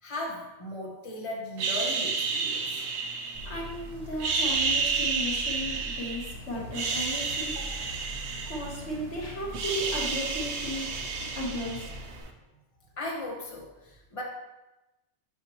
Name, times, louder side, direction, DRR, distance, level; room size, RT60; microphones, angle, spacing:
voice 1, 0.0-2.8 6.5-6.6 7.5-7.9 12.9-14.2, left 1 dB, 30° left, -3 dB, 1.3 m, -37 dB
sound 1, 1.6-3.7 4.1-6.3 6.7-9.1 9.3-12.2, right 4 dB, 75° right, 1.0 m, -31 dB
sound 2, 3.3-12.2, left 1 dB, 35° right, 1.3 m, -43 dB
voice 2, 3.4-7.6 8.5-11.0 11.4-11.9, equal, 80° left, -3 dB, 1.8 m, -35 dB
8.2 x 5.9 x 3.0 m, 1.0 s
omnidirectional pair, 1.1 m